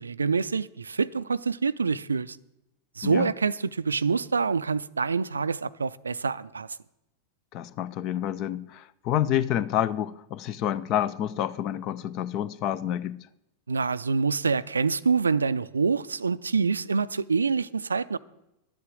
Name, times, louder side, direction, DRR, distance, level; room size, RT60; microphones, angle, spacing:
voice 1, 0.0-2.4 3.0-6.7 13.7-18.2, right 5 dB, 75° right, 0.4 m, -26 dB
voice 2, 7.5-13.2, left 11 dB, 40° left, 0.5 m, -28 dB
11.5 x 8.5 x 7.5 m
figure-of-eight pair, 90°, 0 cm